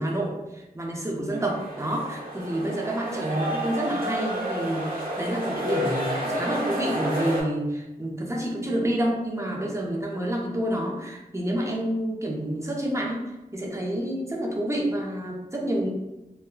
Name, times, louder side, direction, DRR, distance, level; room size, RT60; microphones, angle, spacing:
voice 1, 0.0-13.2 13.5-15.9, right 1 dB, 20° right, -1 dB, 0.6 m, -28 dB
sound 1, 1.3-7.4, equal, 70° right, 1.0 m, -30 dB
3.5 x 2.1 x 2.4 m, 0.99 s
wide cardioid pair, 55°, 16 cm